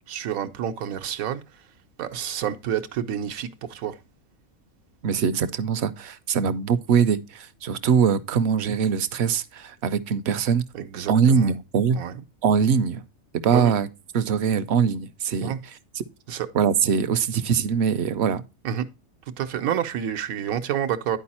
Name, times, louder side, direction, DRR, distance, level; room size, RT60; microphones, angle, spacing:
voice 1, 0.1-1.4 2.0-4.0 10.7-11.5 11.9-12.2 13.5-13.7 15.4-15.6 16.3-16.5 18.6-18.9 19.4-21.2, right 9 dB, 85° right, 1.2 m, -28 dB
voice 2, 5.0-10.6 11.1-12.0 12.4-13.0 13.4-13.9 14.1-15.5 15.9-16.0 16.5-18.4, right 6 dB, 65° right, 0.7 m, -22 dB
10.5 x 4.7 x 4.2 m
omnidirectional pair, 1.4 m